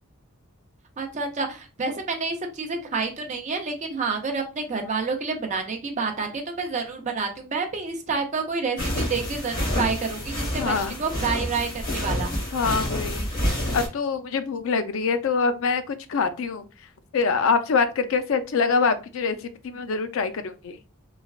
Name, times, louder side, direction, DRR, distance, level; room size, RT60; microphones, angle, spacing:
voice 1, 1.0-12.3, right 4 dB, 35° right, 4 dB, 0.5 m, -29 dB
sound 1, 8.8-13.9, equal, 40° left, 1.2 m, -28 dB
voice 2, 10.6-11.0 12.5-13.3 13.7-16.6 17.1-19.4 19.6-20.8, left 5 dB, 60° left, 9 dB, 0.4 m, -24 dB
3.2 x 2.2 x 2.3 m, 0.31 s
head